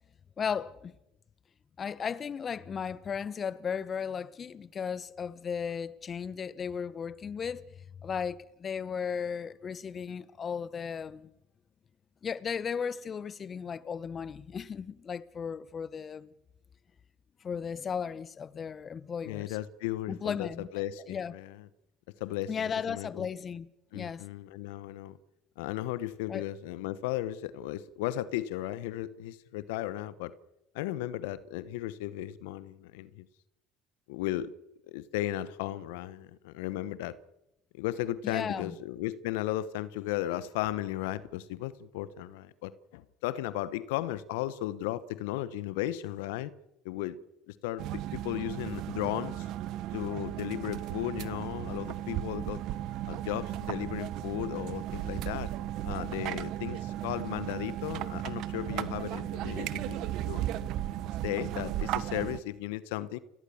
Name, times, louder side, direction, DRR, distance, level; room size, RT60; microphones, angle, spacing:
voice 1, 0.4-0.9 1.8-7.6 8.0-11.3 12.2-16.3 17.4-19.6 20.1-20.7 21.1-21.3 22.5-23.7 23.9-24.2 26.3-26.5 38.2-38.7, left 6 dB, 40° left, 1.0 m, -35 dB
voice 2, 19.2-21.6 22.2-23.3 23.9-25.2 25.6-30.3 30.7-33.2 34.1-34.5 34.9-37.2 37.7-46.5 46.8-47.2 47.5-49.5 49.9-52.6 53.1-55.5 55.8-60.4 61.2-63.2, left 14 dB, 75° left, 1.0 m, -35 dB
sound 1, 47.8-62.4, right 13 dB, 60° right, 1.1 m, -35 dB
29.5 x 13.5 x 7.2 m
hypercardioid pair, 65°, 0 cm